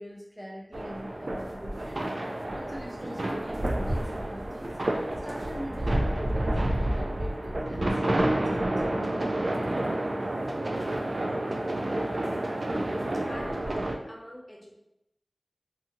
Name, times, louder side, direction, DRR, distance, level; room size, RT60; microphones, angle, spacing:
voice 1, 0.0-4.8 5.2-10.4, equal, 10° right, -4 dB, 0.5 m, -42 dB
sound 1, 0.7-13.9, right 1 dB, 80° right, 0.3 m, -29 dB
voice 2, 13.3-14.7, equal, 30° left, -3 dB, 0.8 m, -43 dB
2.7 x 2.6 x 2.5 m, 0.86 s
wide cardioid pair, 40°, 0 cm